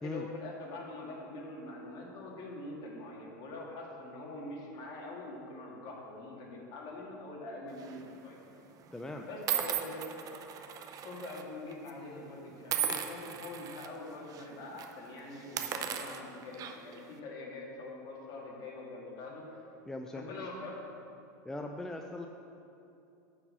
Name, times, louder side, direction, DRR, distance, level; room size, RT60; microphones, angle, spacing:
voice 1, 0.0-8.4 9.2-10.1 11.0-19.6 20.1-20.9, left 2 dB, 45° left, -3 dB, 2.4 m, -44 dB
sound 1, 7.8-8.1 8.8-8.9 9.5-11.4 11.7-11.9 12.7-13.9 14.3-14.5 14.7-14.9 15.4-17.0, right 9 dB, 35° right, 0.7 m, -36 dB
voice 2, 8.9-9.3 19.9-20.3 21.4-22.3, left 2 dB, 5° left, 3 dB, 0.5 m, -39 dB
9.7 x 4.8 x 7.1 m, 2.7 s
supercardioid pair, 115°, 10 cm